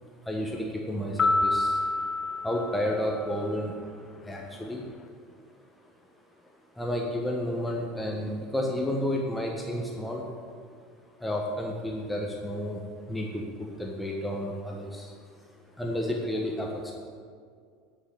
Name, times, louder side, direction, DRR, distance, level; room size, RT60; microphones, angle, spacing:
voice 1, 0.2-1.8 2.4-3.7 4.2-4.9 6.7-10.3 11.2-15.2 15.8-16.9, left 1 dB, 5° left, -1 dB, 1.3 m, -31 dB
sound 1, 1.2-3.7, left 2 dB, 30° left, 0.7 m, -28 dB
9.9 x 5.5 x 8.2 m, 2.1 s
hypercardioid pair, 80°, 0 cm